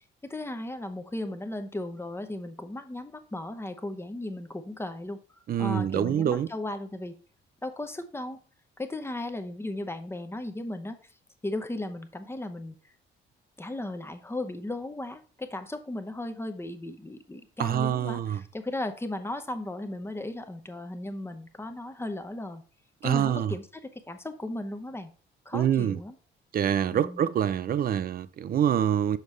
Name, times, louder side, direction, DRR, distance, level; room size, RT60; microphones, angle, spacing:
voice 1, 0.2-5.2 5.6-7.2 7.6-8.4 8.8-11.0 11.4-12.8 13.6-22.6 23.0-25.1 25.5-26.2 26.9-27.2, left 1 dB, 10° left, 0.8 m, -36 dB
voice 2, 5.5-6.5 17.6-18.4 23.0-23.5 25.5-26.0 26.5-29.2, right 9 dB, 50° right, 0.4 m, -26 dB
6.6 x 5.2 x 3.2 m
cardioid pair, 90°, 20 cm